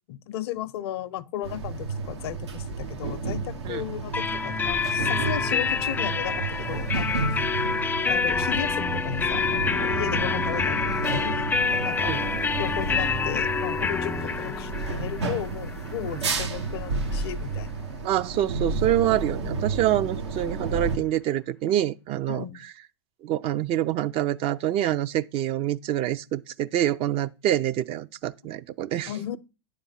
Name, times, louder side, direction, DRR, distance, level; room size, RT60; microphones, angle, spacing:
voice 1, 0.1-7.5 8.0-11.5 11.8-12.3 12.6-17.9 22.3-22.6 29.1-29.4, left 12 dB, 65° left, 0.6 m, -35 dB
sound 1, 1.4-21.0, right 4 dB, 85° right, 1.3 m, -31 dB
sound 2, 4.1-17.7, left 5 dB, 10° left, 0.4 m, -27 dB
voice 2, 18.0-22.4 23.2-29.4, right 12 dB, 40° right, 0.5 m, -26 dB
10.0 x 3.6 x 5.6 m
hypercardioid pair, 100°, 14 cm